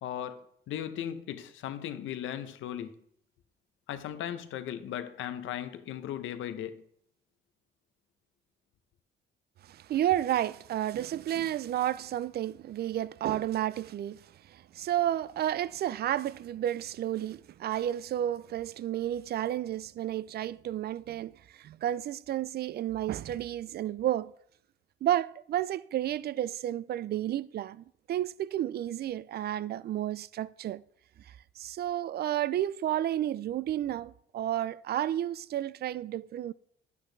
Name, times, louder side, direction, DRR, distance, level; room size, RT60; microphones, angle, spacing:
voice 1, 0.0-2.9 3.9-6.8, left 10 dB, 80° left, 0.8 m, -37 dB
voice 2, 9.6-24.3 25.0-30.8 31.3-36.5, right 12 dB, 55° right, 0.4 m, -31 dB
10.0 x 8.4 x 3.3 m
cardioid pair, 90°, 20 cm